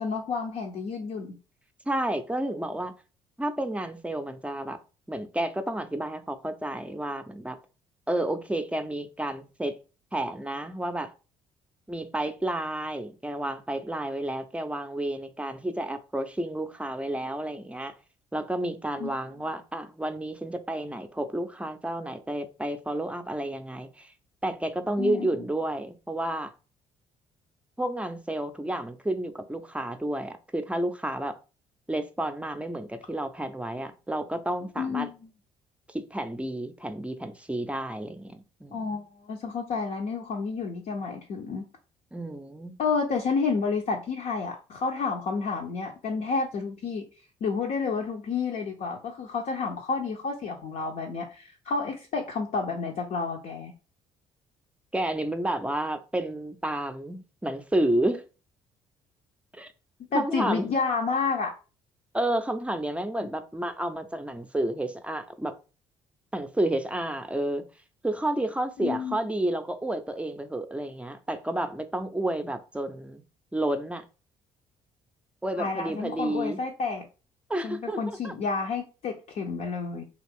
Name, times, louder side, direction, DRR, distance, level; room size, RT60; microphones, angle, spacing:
voice 1, 0.0-1.4 19.0-19.1 25.0-25.3 34.8-35.2 38.7-41.7 42.8-47.0 47.4-53.7 60.1-61.5 63.2-63.3 68.8-69.2 75.6-77.1 77.6-80.0, left 4 dB, 55° left, 0.6 m, -30 dB
voice 2, 1.9-2.9 3.4-4.8 5.1-7.6 8.1-9.8 10.1-11.1 11.9-17.9 18.3-24.1 24.4-26.5 27.8-31.4 31.9-35.1 35.9-39.0 42.1-42.7 54.9-58.2 59.5-59.7 60.1-60.7 62.1-65.5 66.3-67.6 68.0-73.2 73.5-74.0 75.4-76.6 77.5-78.3, right 1 dB, 10° right, 0.5 m, -31 dB
2.5 x 2.4 x 3.4 m
hypercardioid pair, 55°, 16 cm